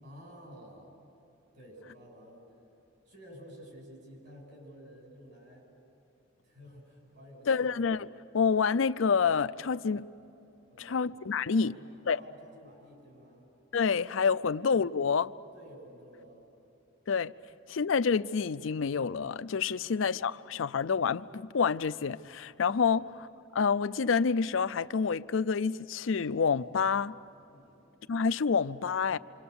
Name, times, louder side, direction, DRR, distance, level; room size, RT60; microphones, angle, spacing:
voice 1, 0.0-0.9 1.5-2.4 3.1-5.7 6.4-7.7 10.7-11.1 11.6-13.4 15.5-16.5 22.9-23.1 27.5-27.8, equal, 60° right, 7.6 m, -52 dB
voice 2, 7.5-8.1 8.3-10.1 10.8-11.7 12.1-12.2 13.7-15.3 17.1-17.3 17.7-23.3 23.5-27.1 28.1-29.2, left 5 dB, 75° left, 0.5 m, -28 dB
27.5 x 26.5 x 7.0 m
head